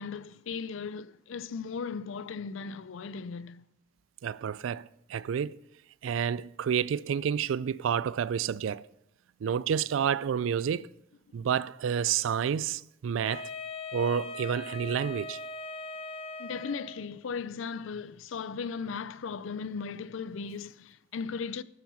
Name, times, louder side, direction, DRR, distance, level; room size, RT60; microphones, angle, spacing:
voice 1, 0.0-3.6 16.4-21.6, left 5 dB, 75° left, 0.4 m, -37 dB
voice 2, 4.2-5.6 6.0-8.9 9.4-10.9 11.3-13.5 13.9-15.4, right 8 dB, 75° right, 0.3 m, -29 dB
Wind instrument woodwind instrument, 13.2-17.1, left 2 dB, 30° left, 0.7 m, -40 dB
9.2 x 7.5 x 5.5 m
head